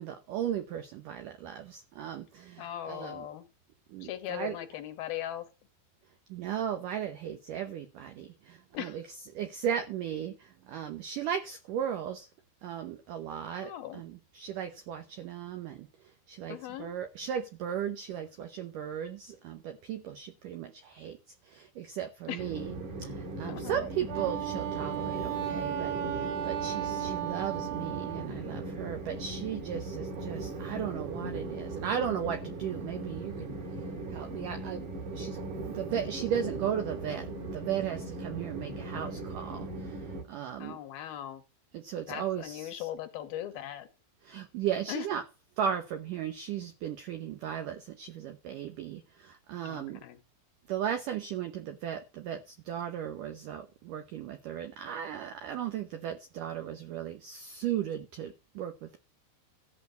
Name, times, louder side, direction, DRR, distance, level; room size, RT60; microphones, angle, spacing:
voice 1, 0.0-3.3 3.9-4.6 6.3-9.0 9.3-12.3 12.6-15.9 16.3-21.2 21.4-22.7 23.0-33.6 34.1-34.9 35.1-35.4 35.6-40.8 41.7-42.9 44.2-45.2 45.6-50.0 50.7-59.0, right 9 dB, 90° right, 1.8 m, -36 dB
voice 2, 2.6-3.4 4.0-5.5 8.7-9.0 13.6-14.0 16.5-16.9 22.3-22.5 23.5-23.9 40.6-41.4 42.1-43.9 44.9-45.1 49.6-50.2, left 12 dB, 70° left, 2.5 m, -39 dB
Train, 22.4-40.2, right 2 dB, 50° right, 2.9 m, -39 dB
Wind instrument woodwind instrument, 24.1-28.3, right 11 dB, 70° right, 2.6 m, -35 dB
14.0 x 4.7 x 8.1 m
omnidirectional pair, 5.2 m